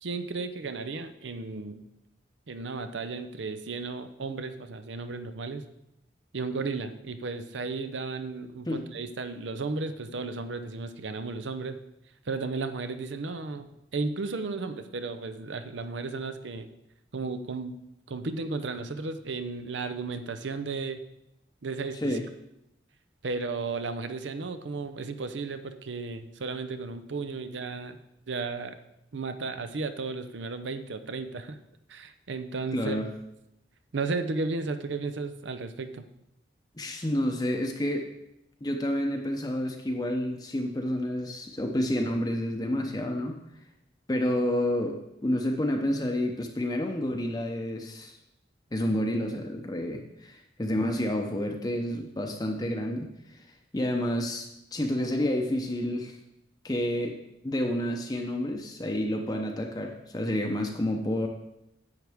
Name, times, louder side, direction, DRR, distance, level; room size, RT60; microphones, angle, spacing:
voice 1, 0.0-1.8 2.5-5.6 6.3-11.8 12.3-16.7 17.1-17.8 18.1-21.0 21.6-22.2 23.2-28.0 28.3-28.8 29.1-31.6 31.9-33.0 33.9-36.1, right 3 dB, 85° right, 10 dB, 0.6 m, -34 dB
voice 2, 32.7-33.1 36.8-38.1 38.6-43.4 44.1-48.2 48.7-53.4 53.7-56.2 56.6-57.2 57.4-61.3, left 1 dB, 20° left, 3 dB, 0.6 m, -29 dB
10.5 x 7.9 x 3.5 m, 0.84 s
head